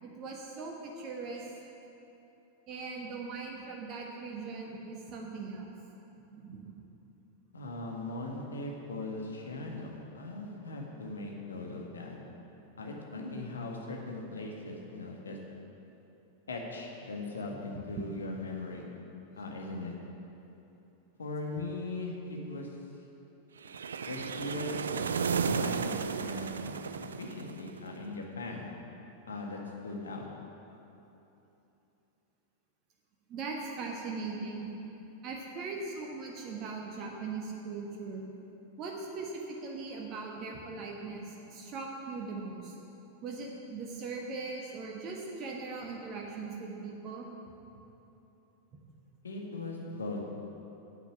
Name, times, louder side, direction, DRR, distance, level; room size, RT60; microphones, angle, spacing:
voice 1, 0.0-1.4 2.7-5.7 6.2-6.7 17.9-18.0 24.9-25.0 25.3-25.6 33.3-34.7 35.2-38.3 38.8-42.7 43.2-47.3, right 4 dB, 35° right, -1 dB, 1.4 m, -40 dB
voice 2, 7.5-12.2 12.8-15.4 16.5-18.8 19.4-19.9 21.2-22.7 24.0-24.7 25.5-26.9 27.2-28.7 29.3-30.2 49.2-50.2, left 2 dB, 70° left, 0 dB, 1.7 m, -39 dB
sound 1, 23.6-27.9, right 6 dB, 70° right, 0.4 m, -33 dB
8.9 x 8.0 x 8.5 m, 3.0 s
figure-of-eight pair, 90°, 0 cm